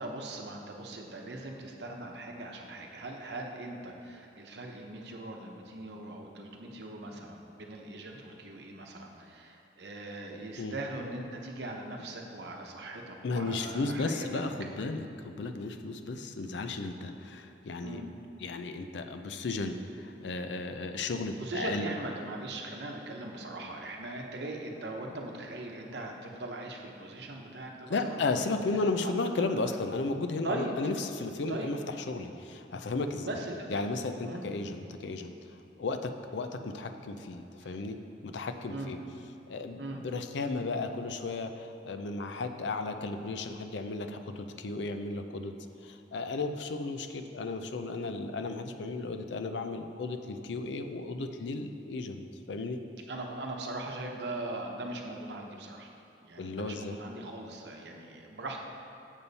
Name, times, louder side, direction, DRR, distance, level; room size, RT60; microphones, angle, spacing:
voice 1, 0.0-14.4 17.8-18.1 21.3-28.4 29.0-29.1 29.6-29.7 30.4-30.8 31.5-31.7 33.2-33.7 34.2-34.5 37.6-37.8 38.7-39.0 39.8-40.0 53.1-55.9 56.2-58.6, right 2 dB, 70° right, 1 dB, 0.9 m, -40 dB
voice 2, 13.2-18.0 18.4-21.9 27.9-31.8 32.1-33.3 33.7-38.0 38.2-39.0 39.5-45.5 45.8-52.8 56.4-57.0, left 3 dB, 80° left, 7 dB, 0.5 m, -34 dB
7.2 x 6.9 x 4.1 m, 2.7 s
head